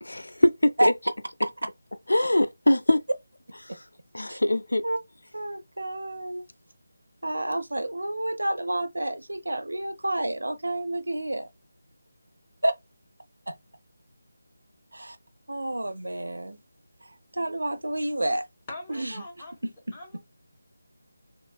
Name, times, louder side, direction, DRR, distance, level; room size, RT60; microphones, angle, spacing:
voice 1, 0.0-0.9 2.1-3.0 3.6-3.8 4.1-4.8, left 1 dB, 70° left, 0.4 m, -23 dB
voice 2, 5.3-6.4 7.2-11.5 12.6-12.7 13.5-13.6 14.9-15.2 15.5-16.6 17.3-18.4 18.9-19.1 19.6-19.9, right 1 dB, 70° right, 0.7 m, -29 dB
voice 3, 18.7-19.6 19.9-20.2, left 2 dB, 15° left, 1.3 m, -41 dB
6.0 x 2.5 x 2.3 m
figure-of-eight pair, 160°, 0 cm